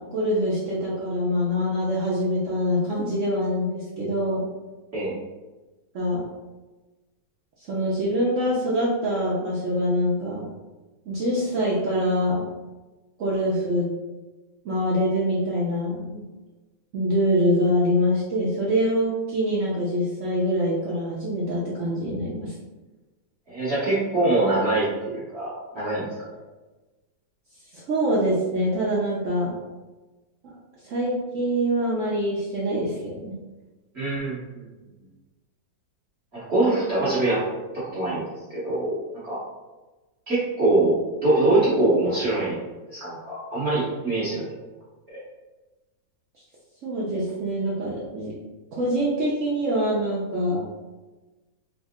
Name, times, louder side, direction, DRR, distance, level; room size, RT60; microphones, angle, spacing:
voice 1, 0.0-4.4 5.9-6.2 7.7-10.5 11.1-12.4 13.2-13.9 14.6-16.2 16.9-22.5 27.7-29.5 30.8-33.4 46.8-48.3 48.8-50.6, equal, 70° right, -6 dB, 0.7 m, -24 dB
voice 2, 23.5-26.1 33.9-34.7 36.3-37.4 37.7-38.2 38.5-39.4 40.3-41.0 41.2-42.6 42.9-44.5 45.1-45.2, right 2 dB, 40° right, -10 dB, 1.3 m, -23 dB
3.6 x 2.0 x 3.6 m, 1.2 s
omnidirectional pair, 2.0 m